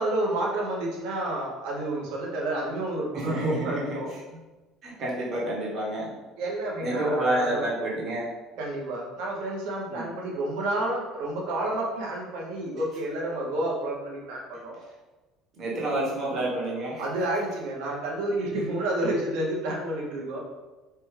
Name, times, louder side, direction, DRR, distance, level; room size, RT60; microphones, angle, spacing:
voice 1, 0.0-4.1 6.4-7.6 8.6-14.8 17.0-20.4, right 1 dB, 80° right, -2 dB, 0.8 m, -30 dB
voice 2, 3.1-4.2 4.8-6.1 6.8-8.3 9.9-10.1 15.6-17.0, right 1 dB, 45° right, -5 dB, 1.1 m, -29 dB
3.3 x 2.2 x 3.2 m, 1.2 s
cardioid pair, 130°, 0 cm